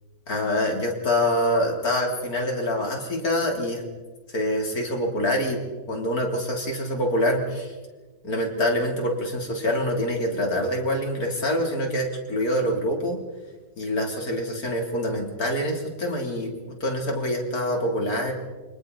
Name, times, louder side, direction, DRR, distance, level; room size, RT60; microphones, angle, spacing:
voice 1, 0.3-3.8 4.3-5.6 5.9-7.7 8.2-13.2 13.8-16.5 16.8-18.3, equal, 55° left, 1 dB, 3.9 m, -25 dB
28.5 x 26.0 x 4.2 m, 1.2 s
omnidirectional pair, 1.9 m